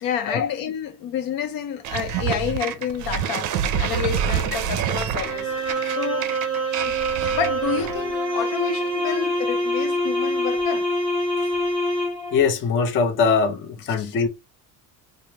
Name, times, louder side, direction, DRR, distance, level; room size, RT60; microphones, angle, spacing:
voice 1, 0.0-5.5 5.8-6.4 6.8-6.9 7.3-10.9 14.0-14.1, left 8 dB, 70° left, 0.7 m, -29 dB
sound 1, 1.8-8.1, right 8 dB, 55° right, 0.5 m, -27 dB
sound 2, 5.2-12.5, equal, 15° left, 1.4 m, -25 dB
voice 2, 12.3-14.3, left 5 dB, 35° left, 0.5 m, -21 dB
4.8 x 2.1 x 2.8 m
cardioid pair, 175°, 36 cm